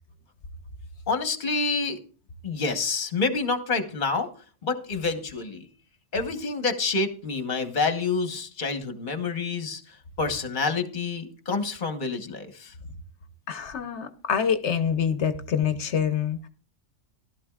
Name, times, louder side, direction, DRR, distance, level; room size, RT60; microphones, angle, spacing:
voice 1, 1.1-2.0 2.4-4.3 4.6-5.7 6.1-12.7, left 4 dB, 45° left, 8 dB, 1.3 m, -28 dB
voice 2, 13.5-16.5, left 7 dB, 70° left, 9 dB, 1.1 m, -26 dB
15.5 x 12.5 x 2.4 m, 0.38 s
omnidirectional pair, 1.2 m